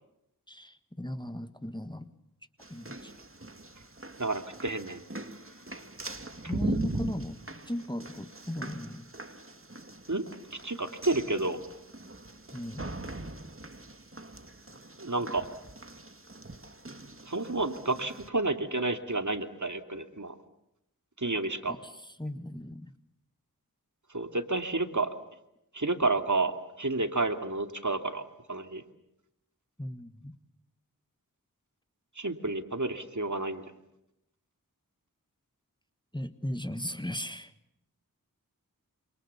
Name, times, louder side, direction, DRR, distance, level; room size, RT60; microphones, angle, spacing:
voice 1, 0.5-2.1 2.7-3.1 6.5-7.4 7.7-9.1 12.5-12.9 21.7-21.8 22.2-22.9 29.8-30.4 36.1-37.5, left 1 dB, 15° left, 1.6 m, -36 dB
sound 1, 2.6-18.3, right 2 dB, 35° right, 2.3 m, -41 dB
voice 2, 4.2-5.0 10.1-10.2 10.5-11.6 15.0-15.5 17.3-20.3 21.2-21.8 24.1-25.1 25.7-28.2 28.5-28.8 32.2-33.6, right 2 dB, 55° right, 2.7 m, -30 dB
27.5 x 27.5 x 7.1 m
wide cardioid pair, 40°, 35 cm